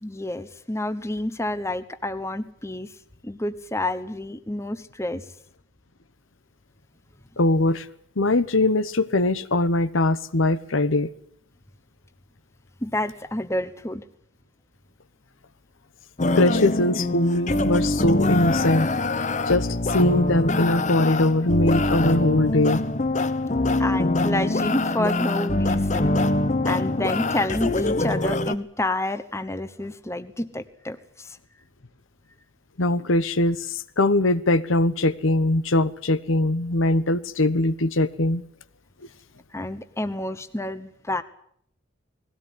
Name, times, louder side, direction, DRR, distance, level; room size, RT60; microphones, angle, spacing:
voice 1, 0.0-2.9 3.2-5.2 12.8-14.0 23.8-26.1 26.6-31.4 39.5-41.2, left 1 dB, 15° left, 11 dB, 1.0 m, -29 dB
voice 2, 7.4-7.9 8.2-11.1 16.3-18.9 19.5-22.8 32.8-38.4, left 2 dB, 75° left, 14 dB, 1.1 m, -21 dB
sound 1, 16.2-28.5, left 2 dB, 35° left, 1.0 m, -24 dB
20.0 x 17.0 x 9.9 m, 0.68 s
head